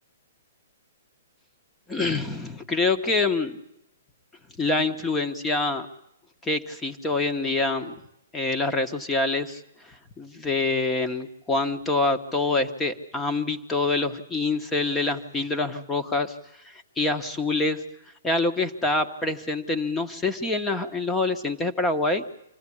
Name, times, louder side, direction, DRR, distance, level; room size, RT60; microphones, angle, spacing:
voice 1, 1.9-3.6 4.6-5.9 6.4-8.0 8.3-16.3 16.6-17.8 18.2-22.2, left 3 dB, 10° left, 7 dB, 1.2 m, -26 dB
26.5 x 15.5 x 10.0 m, 0.81 s
hypercardioid pair, 165°, 0 cm